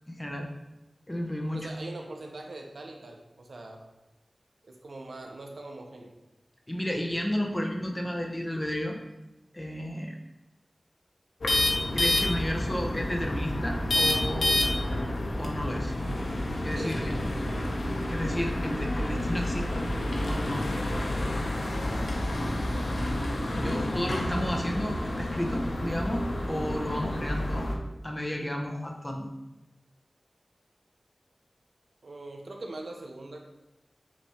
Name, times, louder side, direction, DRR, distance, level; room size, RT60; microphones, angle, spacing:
voice 1, 0.1-0.5 1.1-1.7 6.7-9.0 9.5-10.2 11.9-14.6 15.4-15.9 16.6-17.2 18.1-19.9 20.3-20.6 23.5-27.7 28.0-29.3, equal, 15° left, 1 dB, 1.1 m, -32 dB
voice 2, 1.5-3.8 4.7-6.1 16.7-17.7 27.1-27.3 32.0-33.5, right 2 dB, 80° right, 2 dB, 0.9 m, -42 dB
sound 1, 11.4-27.7, left 1 dB, 80° left, 0.9 m, -29 dB
6.2 x 3.1 x 5.7 m, 0.98 s
wide cardioid pair, 85°, 0 cm